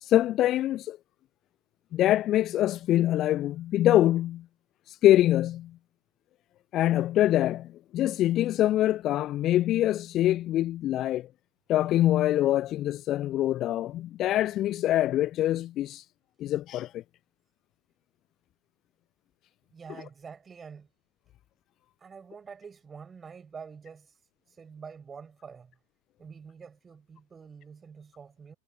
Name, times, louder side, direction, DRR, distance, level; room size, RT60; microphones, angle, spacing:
voice 1, 0.0-1.0 1.9-4.4 4.9-5.7 6.7-11.3 11.7-16.0 16.4-17.0, left 13 dB, 35° left, 0.5 m, -24 dB
voice 2, 19.7-20.9 22.0-24.1 24.5-25.8 26.2-28.5, right 6 dB, 15° right, 5.6 m, -46 dB
figure-of-eight pair, 90°, 0 cm